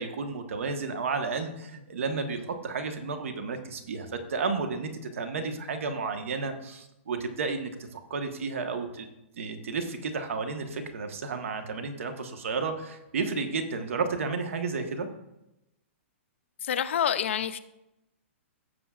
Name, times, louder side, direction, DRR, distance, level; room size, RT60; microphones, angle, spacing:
voice 1, 0.0-9.1 9.4-15.1, right 4 dB, 75° right, 6 dB, 1.3 m, -32 dB
voice 2, 16.6-17.6, left 9 dB, 65° left, 12 dB, 0.6 m, -27 dB
16.0 x 7.0 x 2.5 m, 0.91 s
hypercardioid pair, 165°, 7 cm